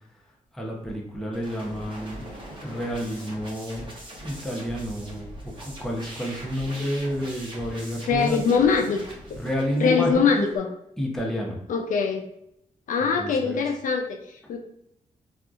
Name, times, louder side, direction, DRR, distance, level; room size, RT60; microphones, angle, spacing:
voice 1, 0.5-2.2 2.6-3.9 4.2-8.6 9.4-10.5 11.0-11.6 13.2-13.6, equal, 5° left, -2 dB, 0.7 m, -30 dB
sound 1, 1.3-10.6, equal, 35° right, 0.9 m, -41 dB
voice 2, 8.1-9.0 9.8-10.7 11.7-12.2 12.9-14.6, left 5 dB, 70° left, 2 dB, 0.4 m, -22 dB
2.7 x 2.4 x 2.4 m, 0.77 s
cardioid pair, 80°, 14 cm